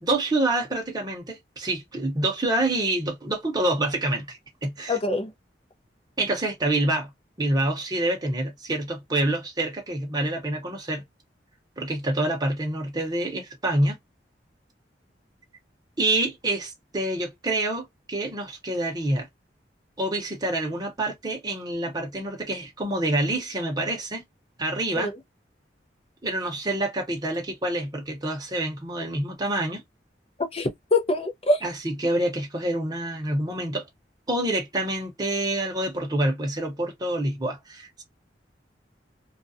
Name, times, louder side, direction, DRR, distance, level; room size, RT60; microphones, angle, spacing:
voice 1, 0.0-5.0 6.2-7.1 7.4-11.0 11.8-14.0 16.0-19.3 20.0-24.2 24.6-25.1 26.2-29.8 31.6-33.8 34.3-38.0, right 1 dB, 20° right, 0.8 m, -27 dB
voice 2, 4.9-5.3 25.0-25.1 30.5-31.6, left 2 dB, 35° left, 0.6 m, -24 dB
2.4 x 2.2 x 2.6 m
head